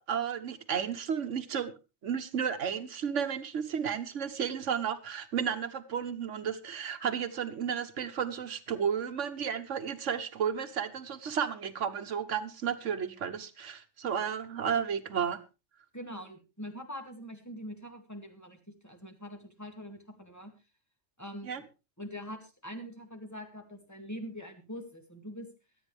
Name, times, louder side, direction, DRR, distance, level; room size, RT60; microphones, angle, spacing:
voice 1, 0.0-1.7 2.0-15.4 21.5-21.6, right 7 dB, 75° right, 9 dB, 1.3 m, -33 dB
voice 2, 15.9-18.6 18.8-20.5 21.2-21.6 22.0-25.5, equal, 15° left, 4 dB, 2.2 m, -43 dB
24.0 x 9.1 x 3.3 m, 0.29 s
omnidirectional pair, 1.3 m